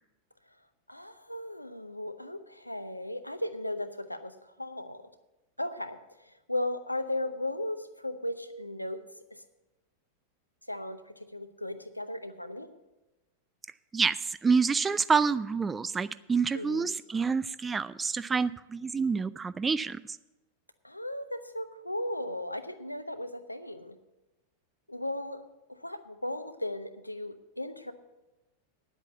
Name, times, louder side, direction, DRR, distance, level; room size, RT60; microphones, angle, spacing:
voice 1, 0.9-5.1 5.6-9.0 9.3-9.4 10.7-12.7 16.5-16.9 20.8-24.0 24.9-25.4 25.7-27.9, left 1 dB, 85° left, 10 dB, 0.8 m, -36 dB
voice 2, 13.9-20.0, right 5 dB, 15° right, 17 dB, 0.4 m, -28 dB
9.8 x 8.2 x 7.7 m, 1.0 s
figure-of-eight pair, 90°, 0 cm